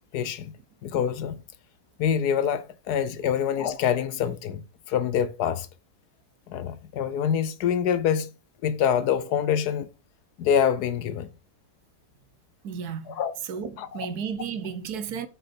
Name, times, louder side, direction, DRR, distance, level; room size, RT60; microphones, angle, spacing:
voice 1, 0.1-0.5 0.8-1.4 2.0-5.7 6.5-8.3 8.6-9.9 10.4-11.3 13.1-13.3 13.8-14.1, left 8 dB, 70° left, 1.1 m, -25 dB
voice 2, 12.6-15.3, right 7 dB, 65° right, 1.2 m, -33 dB
8.7 x 5.7 x 4.2 m
omnidirectional pair, 1.9 m